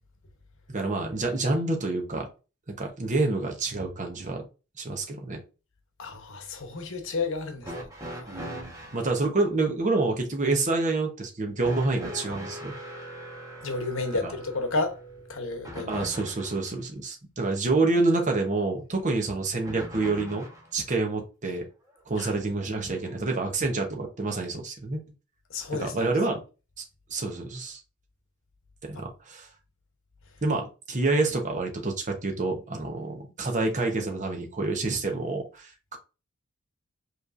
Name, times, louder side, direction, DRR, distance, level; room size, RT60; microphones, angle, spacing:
voice 1, 0.7-2.3 2.8-4.4 4.8-5.4 8.3-12.7 14.2-14.3 15.9-20.5 20.7-21.6 22.1-25.0 25.7-26.4 26.8-26.9 27.1-27.8 28.8-29.5 30.4-36.0, right 3 dB, 35° right, 1.0 m, -28 dB
voice 2, 6.0-7.9 8.2-8.6 13.6-15.0 15.3-16.0 22.2-22.3 25.5-26.1, left 3 dB, 65° left, 1.0 m, -31 dB
sound 1, 7.6-9.1 11.6-16.7 19.6-20.7 21.9-22.0 23.1-23.2, equal, 15° right, 1.1 m, -40 dB
5.2 x 3.2 x 2.5 m
head